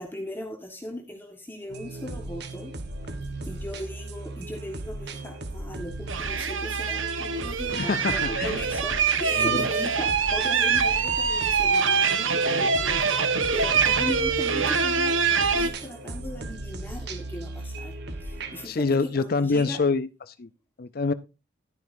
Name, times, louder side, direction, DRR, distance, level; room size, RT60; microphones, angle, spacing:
voice 1, 0.0-2.7 3.5-17.9 18.2-19.8, left 1 dB, 10° left, 1.4 m, -38 dB
sound 1, 1.7-18.7, right 2 dB, 60° right, 1.4 m, -37 dB
sound 2, 6.1-15.7, right 5 dB, 85° right, 1.3 m, -24 dB
voice 2, 7.7-8.6 9.4-9.7 18.6-20.5 20.8-21.1, left 4 dB, 50° left, 0.5 m, -26 dB
12.0 x 10.5 x 2.6 m
head